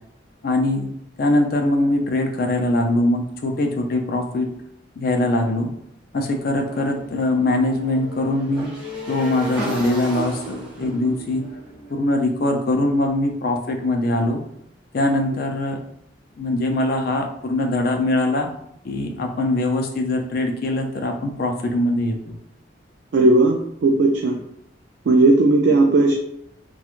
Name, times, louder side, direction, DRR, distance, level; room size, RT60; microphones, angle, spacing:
voice 1, 0.4-0.9 1.2-4.5 5.0-5.7 6.1-8.7 9.1-11.4 11.9-14.4 14.9-15.8 16.4-18.5 18.8-22.4, left 1 dB, 50° left, 3 dB, 0.4 m, -22 dB
Motorcycle / Engine, 6.6-12.7, right 1 dB, 5° right, 1.2 m, -33 dB
voice 2, 23.1-24.4 25.1-26.1, right 2 dB, 60° right, 0 dB, 0.3 m, -16 dB
2.9 x 2.2 x 2.4 m, 0.75 s
head